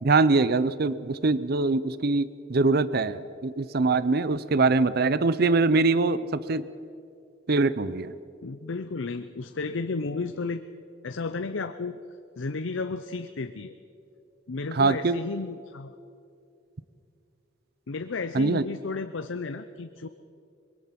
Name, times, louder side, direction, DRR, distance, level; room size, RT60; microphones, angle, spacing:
voice 1, 0.0-6.7 7.5-8.1 14.7-15.2 18.3-18.6, right 3 dB, 55° right, 16 dB, 0.6 m, -23 dB
voice 2, 8.4-10.6 11.0-12.0 12.4-13.7 14.5-15.9 17.9-20.1, left 3 dB, 85° left, 9 dB, 0.7 m, -33 dB
23.5 x 22.0 x 5.9 m, 2.5 s
head